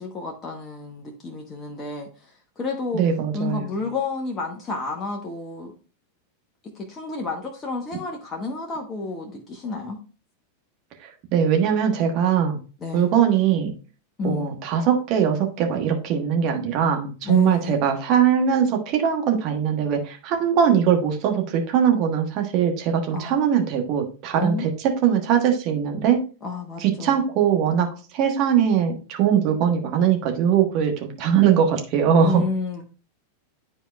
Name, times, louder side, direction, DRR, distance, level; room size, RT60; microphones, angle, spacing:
voice 1, 0.0-3.0 3.3-5.7 6.6-10.0 12.8-13.1 14.2-14.6 17.2-17.8 23.1-23.4 24.3-24.7 26.4-27.2 32.2-32.8, left 3 dB, 25° left, 1 dB, 1.0 m, -30 dB
voice 2, 2.9-3.7 11.0-12.6 12.9-13.7 14.2-26.2 26.8-27.9 28.1-32.4, right 8 dB, 40° right, 3 dB, 1.3 m, -21 dB
10.0 x 4.4 x 2.3 m, 0.35 s
figure-of-eight pair, 90°, 0 cm